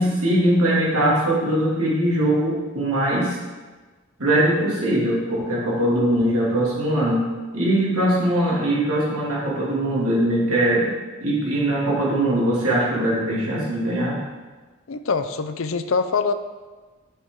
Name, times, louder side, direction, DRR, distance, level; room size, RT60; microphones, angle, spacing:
voice 1, 0.0-3.4 4.2-7.3 7.5-14.2, right 1 dB, 85° right, -5 dB, 2.6 m, -21 dB
voice 2, 14.9-16.3, left 4 dB, 65° left, 10 dB, 0.5 m, -24 dB
8.8 x 6.6 x 3.7 m, 1.3 s
head